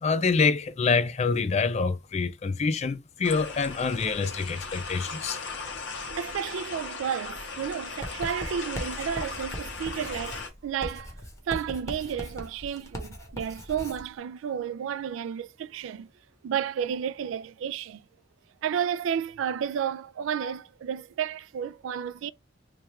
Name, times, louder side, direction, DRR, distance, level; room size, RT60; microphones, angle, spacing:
voice 1, 0.0-5.4, left 4 dB, 35° left, 0.3 m, -26 dB
sound 1, 3.2-10.5, left 4 dB, 70° left, 0.9 m, -38 dB
voice 2, 5.9-11.1 11.5-16.1 16.4-18.0 18.6-22.3, right 8 dB, 85° right, 0.3 m, -32 dB
Writing, 8.0-14.1, equal, 15° left, 0.8 m, -39 dB
3.3 x 2.3 x 4.2 m
head